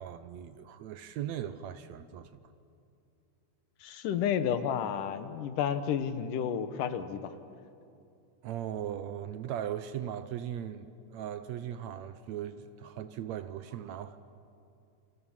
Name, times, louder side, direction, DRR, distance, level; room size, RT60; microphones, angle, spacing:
voice 1, 0.0-2.3 8.4-14.2, right 10 dB, 70° right, 12 dB, 1.8 m, -38 dB
voice 2, 3.8-7.3, left 8 dB, 85° left, 11 dB, 2.8 m, -31 dB
28.5 x 28.0 x 7.3 m, 2.6 s
omnidirectional pair, 3.7 m